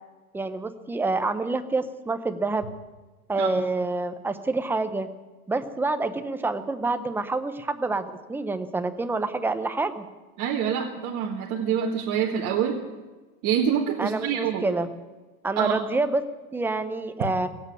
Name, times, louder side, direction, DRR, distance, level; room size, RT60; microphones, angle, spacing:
voice 1, 0.3-2.6 3.3-5.1 5.5-10.0 14.0-14.9 15.4-16.2 16.5-17.5, right 3 dB, 5° right, 9 dB, 0.5 m, -27 dB
voice 2, 10.4-12.8 13.4-14.7 15.6-15.8, right 8 dB, 40° right, -1 dB, 1.7 m, -26 dB
17.5 x 8.4 x 9.4 m, 1.3 s
supercardioid pair, 135°, 44 cm